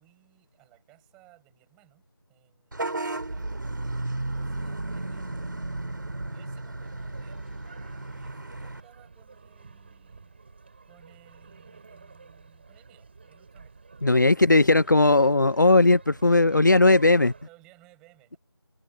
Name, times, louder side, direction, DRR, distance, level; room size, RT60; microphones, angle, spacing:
voice 1, 0.0-2.0 2.3-5.6 6.3-7.5 8.1-10.3 10.8-13.8 14.1-14.6 17.1-18.4, right 21 dB, 5° right, 5.2 m, -60 dB
Vehicle horn car horn honking / Bus, 2.7-8.8, right 2 dB, 50° right, 4.0 m, -33 dB
sound 1, 6.8-17.5, right 4 dB, 25° right, 6.9 m, -51 dB
voice 2, 14.0-17.3, left 2 dB, 45° left, 0.5 m, -18 dB
figure-of-eight pair, 170°, 14 cm